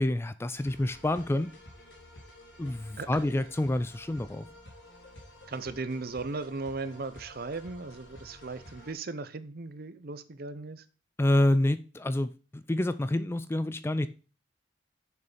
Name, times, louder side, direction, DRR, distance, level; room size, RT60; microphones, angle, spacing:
voice 1, 0.0-1.5 2.6-4.4 11.2-14.1, left 1 dB, 15° left, 0.3 m, -28 dB
sound 1, 0.6-8.9, left 1 dB, 80° left, 3.2 m, -51 dB
voice 2, 5.5-10.8, right 3 dB, 50° right, 0.7 m, -37 dB
6.9 x 6.7 x 5.0 m
head